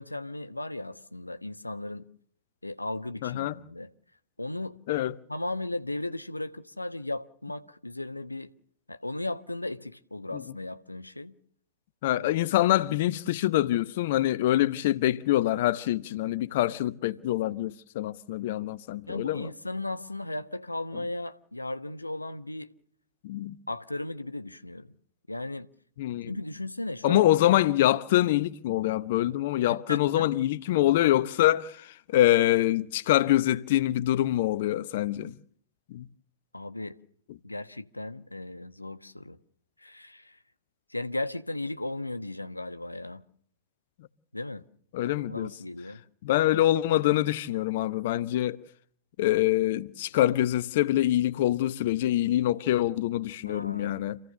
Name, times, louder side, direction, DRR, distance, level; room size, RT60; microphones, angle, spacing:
voice 1, 0.0-2.1 2.6-3.9 4.4-4.8 5.3-8.5 8.9-11.3 12.1-12.5 19.1-22.7 23.7-24.9 25.3-25.7 26.3-27.2 29.7-30.3 36.5-37.0 37.4-39.4 39.8-40.4 40.9-43.2 44.3-44.6 45.0-46.0 53.5-54.0, left 2 dB, 85° left, 1.1 m, -36 dB
voice 2, 3.2-3.6 4.9-5.2 10.3-10.4 12.0-19.5 23.2-23.5 26.0-26.3 27.0-35.3 35.9-36.0 44.9-45.5 46.2-48.6 49.2-54.2, left 14 dB, 50° left, 0.9 m, -25 dB
27.5 x 16.5 x 6.9 m
figure-of-eight pair, 105°, 0 cm